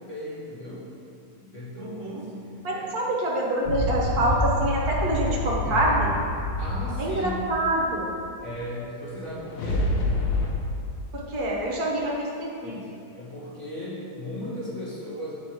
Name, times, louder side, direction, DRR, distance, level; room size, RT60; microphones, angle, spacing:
voice 1, 0.1-0.9 1.4-3.0 6.6-7.5 8.4-9.9 12.6-15.3, left 1 dB, 25° left, -9 dB, 1.5 m, -37 dB
voice 2, 1.8-2.2 2.6-6.1 7.0-8.1 11.1-12.7, right 1 dB, 55° right, -3 dB, 1.4 m, -26 dB
sound 1, 3.7-8.3 9.2-10.5, left 1 dB, 85° left, 1.5 m, -27 dB
7.1 x 4.4 x 4.5 m, 2.5 s
omnidirectional pair, 2.1 m